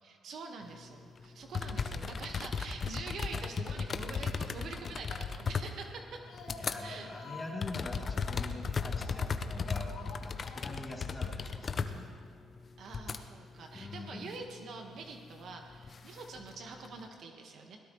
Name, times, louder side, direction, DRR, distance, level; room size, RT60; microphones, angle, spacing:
voice 1, 0.0-6.2 6.8-7.1 12.8-17.8, right 4 dB, 65° right, 3 dB, 1.5 m, -45 dB
sound 1, 1.2-1.3 1.5-6.8 7.2-13.2 13.7-14.3 15.5-17.0, left 5 dB, 40° left, 0.8 m, -36 dB
Speech, 5.9-9.5 9.9-11.0 11.3-11.4 11.7-11.8, left 4 dB, 80° left, 2.1 m, -50 dB
voice 2, 6.6-9.9 10.2-12.1 13.7-14.4, left 2 dB, 20° left, -3 dB, 3.5 m, -44 dB
21.5 x 17.5 x 3.2 m, 2.4 s
cardioid pair, 90°, 0 cm